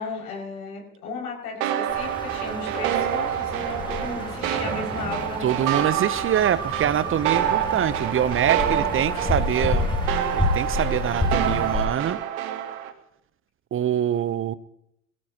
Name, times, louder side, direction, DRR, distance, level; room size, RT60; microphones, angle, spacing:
voice 1, 0.0-6.0 8.7-9.3, left 3 dB, 75° left, 6.4 m, -35 dB
sound 1, 1.6-12.9, right 11 dB, 65° right, 2.0 m, -27 dB
sound 2, 1.9-11.9, left 2 dB, 10° left, 3.7 m, -30 dB
voice 2, 5.4-9.9 10.3-12.2 13.7-14.5, right 10 dB, 30° right, 0.9 m, -24 dB
22.5 x 17.0 x 3.0 m
hypercardioid pair, 75°, 45 cm